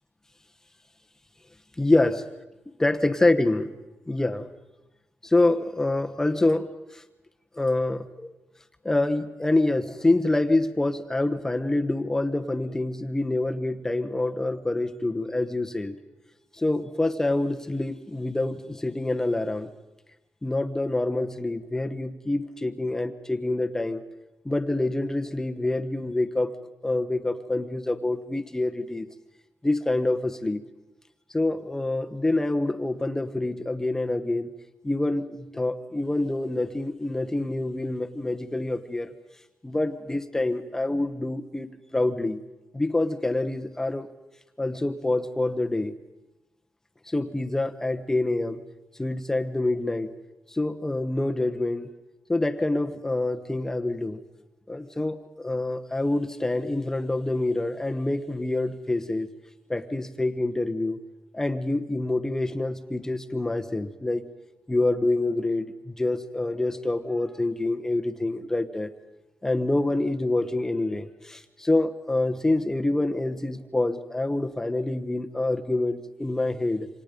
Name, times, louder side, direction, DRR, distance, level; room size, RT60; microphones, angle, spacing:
voice 1, 1.8-2.1 2.8-3.7 4.1-4.5 5.2-7.0 7.6-8.3 8.8-16.0 16.6-19.7 20.4-24.0 24.4-26.5 26.8-29.1 29.6-30.6 31.3-34.5 34.8-39.1 39.6-42.4 42.7-44.1 44.6-45.9 47.1-48.6 49.0-50.1 50.5-51.9 52.3-54.2 54.7-59.3 59.7-61.0 61.3-64.3 64.7-68.9 69.4-76.9, left 2 dB, 10° left, 7 dB, 1.0 m, -26 dB
27.5 x 26.5 x 5.2 m, 1.0 s
wide cardioid pair, 180°, 5 cm